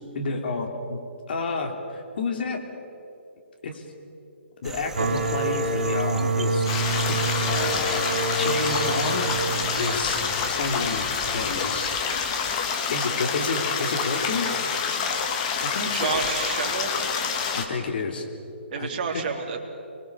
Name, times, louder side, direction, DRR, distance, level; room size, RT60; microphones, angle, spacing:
voice 1, 0.1-1.0 1.3-2.6 3.6-3.8 4.6-6.7 7.0-9.3 9.8-11.9 12.9-14.5 15.6-16.2 17.5-18.3 18.8-18.9 19.1-19.3, left 3 dB, 55° left, 3 dB, 3.5 m, -30 dB
sound 1, 4.6-12.8, right 3 dB, 5° right, 0.8 m, -39 dB
sound 2, 4.9-10.4, right 2 dB, 60° right, 4.5 m, -27 dB
sound 3, 6.7-17.7, left 6 dB, 35° left, 2.4 m, -27 dB
voice 2, 15.9-16.9 18.7-19.6, right 6 dB, 40° right, 1 dB, 3.5 m, -29 dB
28.0 x 21.5 x 7.2 m, 2.7 s
figure-of-eight pair, 135°, 7 cm